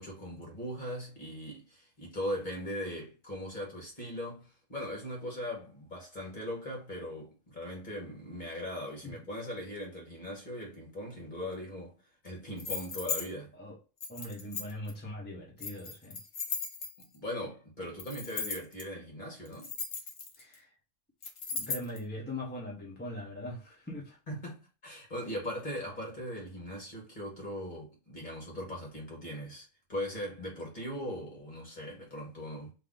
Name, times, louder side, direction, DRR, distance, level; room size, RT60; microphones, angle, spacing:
voice 1, 0.0-4.4 4.7-12.0 12.2-13.5 17.0-19.7 24.3-32.7, left 1 dB, 35° left, 1.6 m, -39 dB
sound 1, 12.6-13.2 14.0-14.9 15.6-17.2 18.0-18.8 19.5-20.5 21.2-22.0, left 5 dB, 60° left, 1.3 m, -36 dB
voice 2, 14.1-16.2 20.4-20.7 21.5-24.2, left 1 dB, 10° left, 0.8 m, -41 dB
3.3 x 2.6 x 3.8 m
omnidirectional pair, 1.5 m